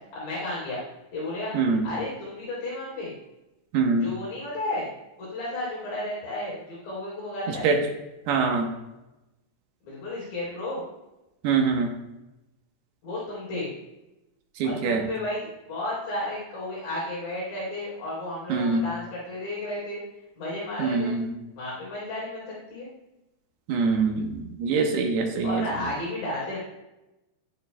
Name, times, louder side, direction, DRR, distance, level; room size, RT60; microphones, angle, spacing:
voice 1, 0.1-0.8 1.1-1.6 1.8-3.1 4.0-4.9 5.2-7.7 9.8-10.8 13.0-13.7 14.6-20.0 20.4-21.1 21.5-22.9 25.4-26.6, left 1 dB, 80° left, -7 dB, 5.9 m, -33 dB
voice 2, 3.7-4.1 7.5-7.8 8.3-8.7 11.4-11.9 14.6-15.0 18.5-18.8 20.8-21.3 23.7-25.6, right 4 dB, 75° right, 3 dB, 3.0 m, -24 dB
12.0 x 11.0 x 2.2 m, 0.96 s
omnidirectional pair, 4.8 m